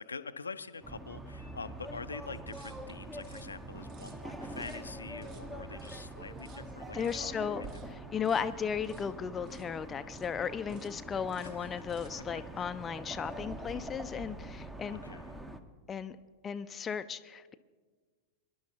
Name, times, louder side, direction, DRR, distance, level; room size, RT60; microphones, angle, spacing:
voice 1, 0.0-7.5 11.4-11.8 12.6-12.7 14.9-15.3, left 4 dB, 75° left, 10 dB, 0.5 m, -45 dB
sound 1, 0.8-15.6, right 1 dB, 10° right, 0.8 m, -44 dB
sound 2, 2.4-10.3 10.7-11.0 11.3-12.3, right 4 dB, 45° right, 1.4 m, -55 dB
voice 2, 6.9-7.6 8.1-15.0 15.9-16.2 16.4-17.5, left 7 dB, 20° left, 10 dB, 0.4 m, -35 dB
25.5 x 11.0 x 2.8 m, 1.5 s
figure-of-eight pair, 90°, 0 cm